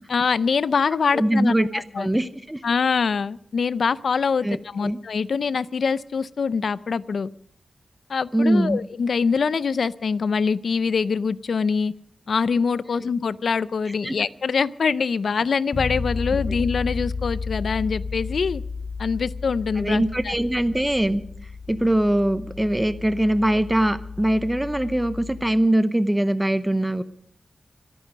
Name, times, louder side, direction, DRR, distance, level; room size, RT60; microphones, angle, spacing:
voice 1, 0.1-2.1 2.6-7.3 8.1-11.9 12.3-18.6 19.0-20.3, left 5 dB, 85° left, 17 dB, 0.5 m, -24 dB
voice 2, 1.1-2.6 4.4-5.0 8.3-8.8 12.9-13.0 14.0-14.1 19.8-21.2 21.7-27.0, right 1 dB, 10° right, 12 dB, 0.8 m, -22 dB
Bass guitar, 15.7-25.6, left 4 dB, 50° left, 3.1 m, -33 dB
25.5 x 9.3 x 5.2 m, 0.64 s
wide cardioid pair, 105°, 0 cm